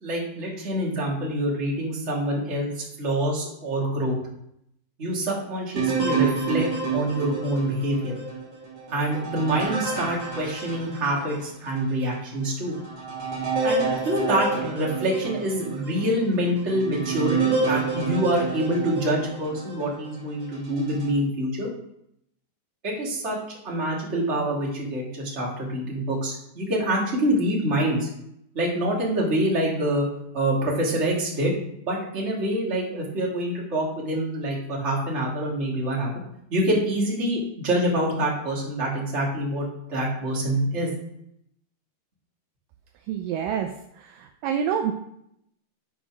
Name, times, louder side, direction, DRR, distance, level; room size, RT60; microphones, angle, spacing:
voice 1, 0.0-4.2 5.0-8.1 8.9-12.7 13.6-21.7 22.8-23.4 23.6-28.1 28.5-30.1 30.3-31.5 31.8-36.1 36.5-40.9, right 1 dB, 20° right, -4 dB, 2.3 m, -26 dB
sound 1, 5.8-11.5 12.0-12.1 12.7-19.9 20.5-21.1, right 4 dB, 40° right, 3.2 m, -29 dB
voice 2, 43.1-43.7 44.0-44.9, right 8 dB, 80° right, 5 dB, 2.1 m, -27 dB
10.5 x 5.1 x 6.1 m, 0.76 s
omnidirectional pair, 4.3 m